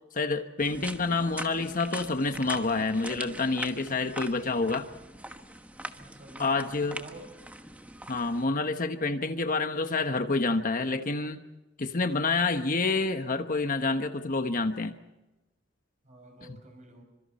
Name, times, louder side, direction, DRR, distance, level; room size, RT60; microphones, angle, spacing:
voice 1, 0.1-4.9 6.4-7.0 8.1-11.4 11.8-15.0 16.5-16.6, left 3 dB, 45° left, 7 dB, 1.2 m, -28 dB
sound 1, 0.6-8.4, right 1 dB, 5° right, 1.2 m, -42 dB
voice 2, 5.9-7.2 16.0-17.0, equal, 40° right, 4 dB, 6.8 m, -49 dB
29.0 x 26.0 x 4.3 m, 1.0 s
head